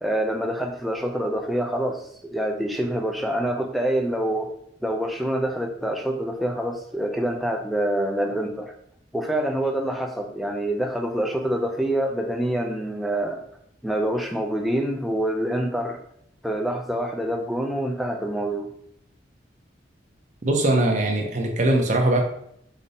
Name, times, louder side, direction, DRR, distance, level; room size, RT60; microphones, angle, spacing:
voice 1, 0.0-2.0 2.3-4.5 4.8-8.7 9.1-13.4 13.8-16.0 16.4-18.7, right 1 dB, ahead, 2 dB, 0.3 m, -26 dB
voice 2, 20.4-22.2, right 1 dB, 40° right, 2 dB, 0.6 m, -21 dB
5.0 x 2.0 x 2.7 m, 0.71 s
head